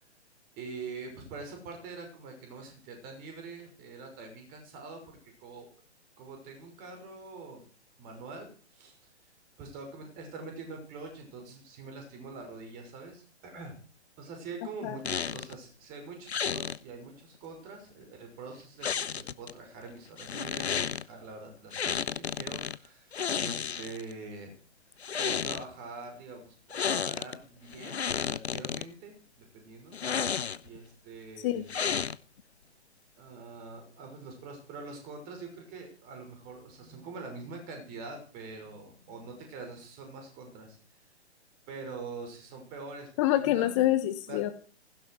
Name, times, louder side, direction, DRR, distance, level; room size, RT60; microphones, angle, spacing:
voice 1, 0.6-5.7 6.2-7.6 8.0-9.0 9.6-13.8 14.2-24.6 25.2-30.0 30.6-31.8 33.2-40.8 41.7-43.7 44.3-44.4, right 4 dB, 25° right, 4 dB, 6.0 m, -44 dB
sound 1, 15.0-15.6 16.3-16.8 18.8-19.5 20.2-21.0 21.7-22.8 23.1-24.1 24.9-25.6 26.7-27.4 27.7-28.8 29.9-30.8 31.7-32.4, left 7 dB, 65° left, 0.9 m, -32 dB
voice 2, 43.2-44.5, left 14 dB, 25° left, 9 dB, 1.1 m, -26 dB
17.0 x 16.0 x 4.8 m, 0.39 s
figure-of-eight pair, 125°, 35 cm